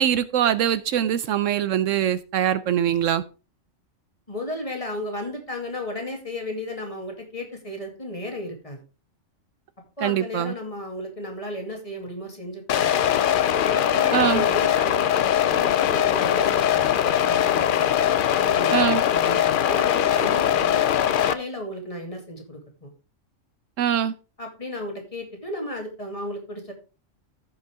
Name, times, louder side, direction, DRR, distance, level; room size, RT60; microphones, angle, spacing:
voice 1, 0.0-3.2 10.0-10.5 14.1-14.4 18.7-19.0 23.8-24.1, right 10 dB, 75° right, 0.9 m, -22 dB
voice 2, 4.3-8.8 10.0-13.2 13.7-15.1 15.5-17.9 18.4-20.8 21.2-22.9 24.4-26.7, left 1 dB, 25° left, 2.3 m, -34 dB
sound 1, 12.7-21.3, left 10 dB, 60° left, 0.5 m, -21 dB
14.5 x 5.5 x 3.5 m
omnidirectional pair, 1.4 m